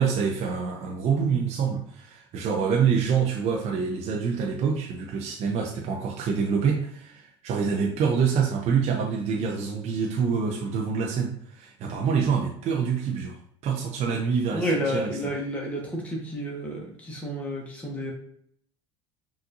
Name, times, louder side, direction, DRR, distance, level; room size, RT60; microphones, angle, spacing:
voice 1, 0.0-13.4 13.6-15.3, right 6 dB, 45° right, 1 dB, 0.6 m, -26 dB
voice 2, 14.5-18.1, equal, 10° left, -2 dB, 1.0 m, -30 dB
5.8 x 2.6 x 2.5 m, 0.67 s
figure-of-eight pair, 70°, 16 cm